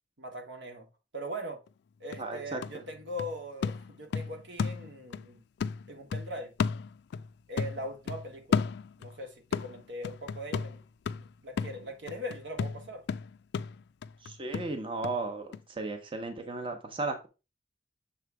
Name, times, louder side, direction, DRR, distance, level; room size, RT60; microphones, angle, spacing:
voice 1, 0.2-0.9 1.1-1.6 2.0-5.4 5.9-6.5 7.5-8.7 9.0-10.8 11.2-13.0, equal, 80° right, 1.5 m, -40 dB
sound 1, 1.7-1.8 2.1-5.3 5.6-7.3 7.6-9.2 9.5-15.2 15.5-15.6, left 6 dB, 65° left, 0.3 m, -34 dB
voice 2, 2.2-2.6 14.2-17.3, right 3 dB, 30° right, 0.8 m, -35 dB
6.8 x 3.2 x 4.7 m
head